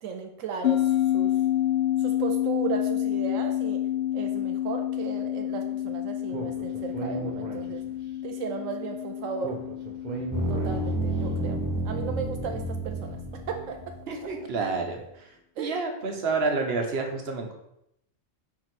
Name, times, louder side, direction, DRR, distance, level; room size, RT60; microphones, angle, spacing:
voice 1, 0.0-1.3 2.0-3.8 4.1-7.8 8.2-9.6 10.5-11.6 11.8-13.2 13.5-13.8 15.6-15.8, right 6 dB, 85° right, 4 dB, 1.0 m, -35 dB
sound 1, 0.6-13.4, left 12 dB, 60° left, 0.9 m, -29 dB
Speech, 6.3-8.1 9.4-11.2, right 3 dB, 40° right, 1.0 m, -37 dB
sound 2, 10.3-14.2, right 1 dB, 20° right, 0.7 m, -30 dB
voice 2, 14.1-15.3 15.6-17.5, right 3 dB, 55° right, 3 dB, 1.3 m, -29 dB
4.8 x 4.3 x 6.0 m, 0.80 s
omnidirectional pair, 1.3 m